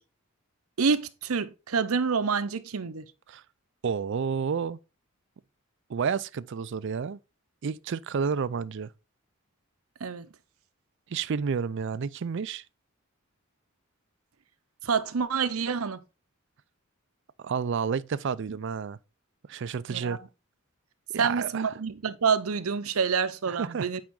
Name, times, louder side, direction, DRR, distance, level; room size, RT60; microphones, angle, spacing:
voice 1, 0.8-3.0 10.0-10.3 14.8-16.0 19.9-20.2 21.2-24.0, right 5 dB, 85° right, 0.7 m, -27 dB
voice 2, 3.8-4.8 5.9-7.2 7.6-8.9 11.1-12.6 17.4-19.0 19.5-20.2 21.1-21.7 23.5-23.9, right 6 dB, 60° right, 0.4 m, -30 dB
8.7 x 5.1 x 3.7 m
head